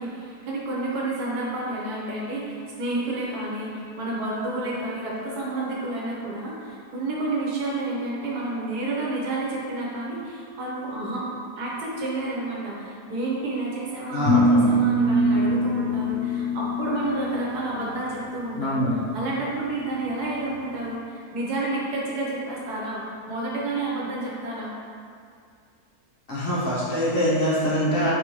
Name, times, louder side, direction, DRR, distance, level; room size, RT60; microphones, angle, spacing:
voice 1, 0.0-11.3 11.6-18.8 19.1-24.7, right 2 dB, 80° right, -5 dB, 1.3 m, -30 dB
voice 2, 14.1-14.7 18.6-19.0 26.3-28.1, equal, 45° left, -8 dB, 0.8 m, -24 dB
sound 1, 14.3-17.4, equal, 65° left, 1.1 m, -22 dB
4.1 x 3.8 x 3.0 m, 2.3 s
omnidirectional pair, 1.7 m